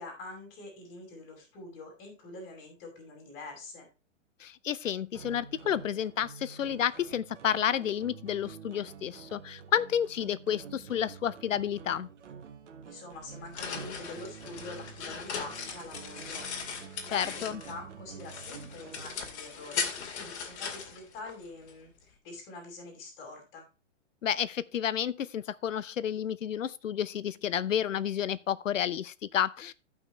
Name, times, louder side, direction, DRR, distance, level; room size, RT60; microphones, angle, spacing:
voice 1, 0.0-3.9 12.8-16.4 16.8-19.9 20.1-23.6, left 2 dB, 30° left, 5.5 m, -45 dB
voice 2, 4.4-12.1 17.1-17.6 24.2-29.7, left 9 dB, 85° left, 0.8 m, -31 dB
sound 1, 5.1-19.3, right 6 dB, 70° right, 1.6 m, -48 dB
sound 2, 13.1-17.9 18.2-21.7, left 6 dB, 60° left, 2.4 m, -38 dB
15.0 x 5.9 x 3.2 m
hypercardioid pair, 135°, 38 cm